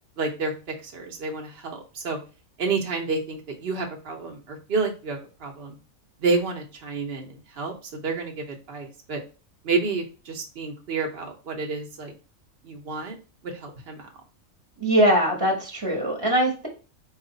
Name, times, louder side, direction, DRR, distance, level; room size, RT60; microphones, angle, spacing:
voice 1, 0.2-0.5 0.8-2.2 2.6-5.8 6.2-9.2 9.6-12.1 12.6-13.2 13.4-14.1, right 4 dB, 50° right, 2 dB, 1.1 m, -29 dB
voice 2, 14.8-16.7, right 1 dB, 20° right, -1 dB, 1.1 m, -21 dB
4.6 x 2.5 x 3.9 m, 0.34 s
omnidirectional pair, 1.4 m